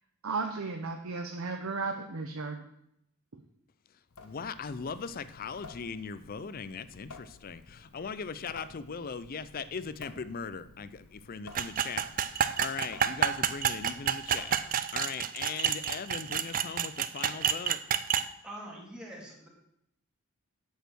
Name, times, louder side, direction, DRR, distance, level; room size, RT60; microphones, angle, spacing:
voice 1, 0.2-2.7, right 4 dB, 65° right, 5 dB, 0.7 m, -34 dB
Water tap faucet / Sink (filling or washing) / Drip, 4.1-15.0, left 3 dB, 75° left, 1.0 m, -53 dB
voice 2, 4.2-17.8, left 5 dB, 40° left, 14 dB, 0.4 m, -39 dB
sound 1, 11.5-18.3, right 8 dB, 40° right, 0.4 m, -29 dB
voice 3, 18.4-19.5, right 1 dB, 5° right, -2 dB, 2.2 m, -44 dB
8.1 x 6.5 x 6.2 m, 0.77 s
head